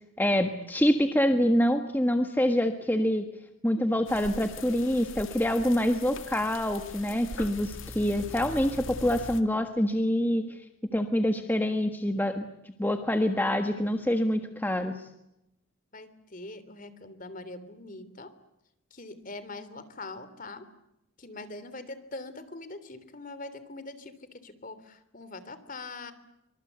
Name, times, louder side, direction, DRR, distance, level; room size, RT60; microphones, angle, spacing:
voice 1, 0.2-3.3 3.6-10.5 10.9-12.5 12.8-15.0, equal, 10° left, 6 dB, 1.5 m, -26 dB
sound 1, 4.1-9.4, left 3 dB, 70° left, 2.1 m, -41 dB
voice 2, 15.9-18.3 18.9-20.6 21.2-26.1, left 2 dB, 40° left, 13 dB, 3.1 m, -43 dB
26.5 x 25.5 x 8.2 m, 0.83 s
head